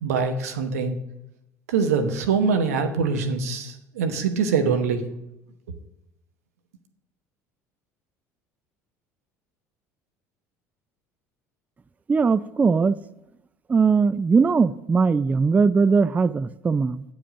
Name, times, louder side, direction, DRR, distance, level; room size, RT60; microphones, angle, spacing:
voice 1, 0.0-1.0 1.7-5.1, right 5 dB, 80° right, 7 dB, 1.0 m, -24 dB
voice 2, 12.1-13.0 13.7-17.0, right 5 dB, 20° right, 17 dB, 0.3 m, -20 dB
8.7 x 5.1 x 6.6 m, 0.87 s
hypercardioid pair, 70°, 8 cm